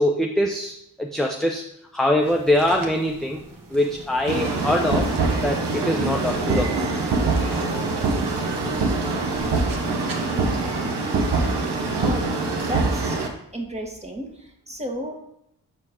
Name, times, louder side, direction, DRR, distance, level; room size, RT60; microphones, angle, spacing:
voice 1, 0.0-3.4 3.7-5.2 5.4-6.9 8.7-8.8, left 1 dB, ahead, 1 dB, 0.6 m, -23 dB
sound 1, 2.2-10.3, right 2 dB, 55° right, 1.2 m, -42 dB
sound 2, 4.3-13.3, right 3 dB, 85° right, 0.9 m, -24 dB
voice 2, 11.9-13.2 13.5-15.2, right 1 dB, 15° right, 2 dB, 1.4 m, -33 dB
6.6 x 4.5 x 3.6 m, 0.75 s
cardioid pair, 40°, 40 cm